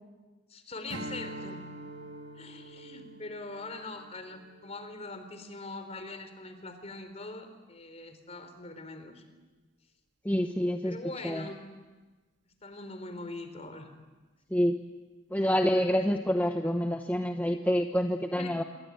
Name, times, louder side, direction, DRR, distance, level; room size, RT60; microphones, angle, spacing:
voice 1, 0.5-1.6 2.3-9.2 10.8-11.6 12.6-13.9 18.4-18.6, left 2 dB, 35° left, 8 dB, 3.8 m, -42 dB
Strum, 0.9-5.6, right 1 dB, 80° right, 2.4 m, -44 dB
voice 2, 10.2-11.0 11.2-11.4 14.5-14.7 15.3-18.6, equal, 10° left, 4 dB, 1.1 m, -27 dB
26.5 x 23.5 x 9.3 m, 1.3 s
head